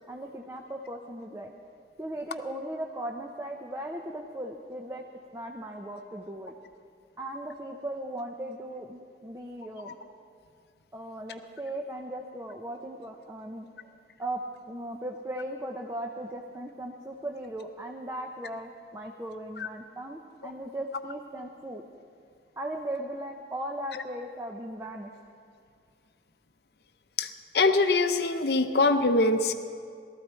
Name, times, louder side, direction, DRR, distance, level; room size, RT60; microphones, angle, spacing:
voice 1, 0.1-1.5 2.0-5.0 5.3-6.5 7.2-9.9 10.9-13.7 14.2-14.4 14.7-21.8 22.6-25.1, right 1 dB, 15° right, 1 dB, 0.7 m, -37 dB
voice 2, 27.5-29.5, left 3 dB, 65° left, 8 dB, 0.8 m, -23 dB
18.5 x 14.0 x 4.5 m, 2.2 s
head